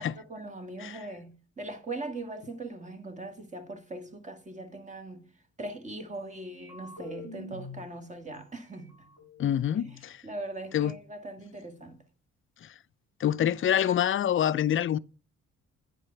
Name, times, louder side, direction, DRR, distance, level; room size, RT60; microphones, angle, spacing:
voice 1, 0.3-5.3 5.6-9.1 9.8-10.0 10.2-12.0, right 2 dB, 25° right, 1.8 m, -40 dB
sound 1, 6.5-7.8 8.3-8.4 8.7-10.0, left 4 dB, 80° right, 5.8 m, -46 dB
voice 2, 9.4-10.2 10.7-10.9 12.6-12.7 13.2-15.0, left 10 dB, 45° left, 0.5 m, -26 dB
9.2 x 4.9 x 5.7 m
cardioid pair, 90°, 30 cm